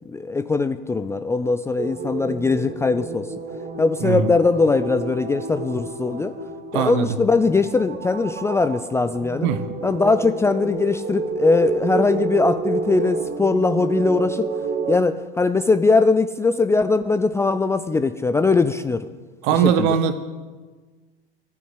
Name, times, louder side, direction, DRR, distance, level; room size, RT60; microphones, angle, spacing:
voice 1, 0.1-3.3 3.8-6.3 6.7-9.5 9.8-14.5 14.9-19.1 19.5-20.0, left 3 dB, 10° left, 10 dB, 0.4 m, -20 dB
sound 1, 1.8-15.0, right 4 dB, 30° right, 1.4 m, -29 dB
voice 2, 4.0-4.3 6.7-7.1 9.4-9.6 19.4-20.1, right 8 dB, 55° right, 11 dB, 1.3 m, -20 dB
14.0 x 6.2 x 9.7 m, 1.4 s
figure-of-eight pair, 85°, 29 cm